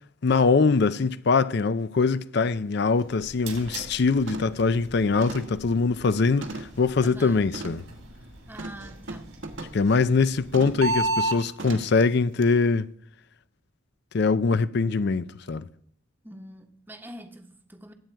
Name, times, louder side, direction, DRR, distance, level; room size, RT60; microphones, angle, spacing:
voice 1, 0.2-7.8 9.7-12.9 14.1-15.6, left 4 dB, 50° left, 0.5 m, -23 dB
sound 1, 2.5-2.6 3.0-3.2 3.6-3.9 4.3-4.7 5.2-6.9 7.5-7.9 8.6-9.9 10.5-10.9 11.6-12.0 12.4-12.5, right 2 dB, 65° right, 1.4 m, -39 dB
sound 2, 2.9-11.4, right 2 dB, 90° right, 4.7 m, -35 dB
voice 2, 7.0-7.5 8.5-9.4 16.2-17.9, right 1 dB, 10° right, 1.1 m, -44 dB
20.0 x 8.9 x 4.6 m
head